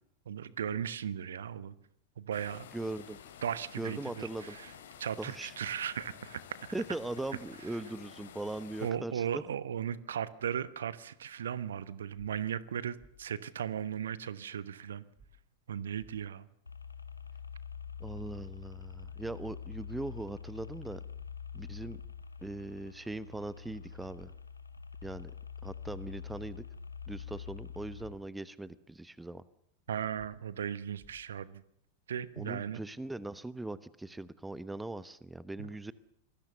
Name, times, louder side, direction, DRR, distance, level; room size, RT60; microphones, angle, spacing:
voice 1, 0.3-1.7 2.2-2.7 3.4-4.7 5.0-6.4 8.8-15.0 15.7-16.5 29.9-31.6 32.1-32.8 35.6-35.7, right 9 dB, 65° right, 17 dB, 1.1 m, -37 dB
sound 1, 2.3-8.9, left 8 dB, 60° left, 3.3 m, -51 dB
voice 2, 2.7-3.2 3.8-4.5 5.2-5.5 6.7-9.4 18.0-21.0 21.5-22.0 22.4-24.3 25.0-25.3 25.6-26.6 27.1-29.4 32.4-35.9, right 2 dB, 5° right, 17 dB, 1.1 m, -40 dB
sound 2, 13.0-13.1 15.2-15.3 16.0-16.1 18.2-18.3 19.0-19.1 21.2-21.3 22.0-22.1 24.2-24.3 25.0-25.1 27.2-27.3 28.0-28.1 30.2-30.3 31.0-31.1, right 5 dB, 25° right, 4.5 m, -58 dB
sound 3, 16.7-28.1, left 7 dB, 80° left, 1.6 m, -45 dB
27.5 x 20.5 x 6.8 m, 0.72 s
figure-of-eight pair, 90°, 0 cm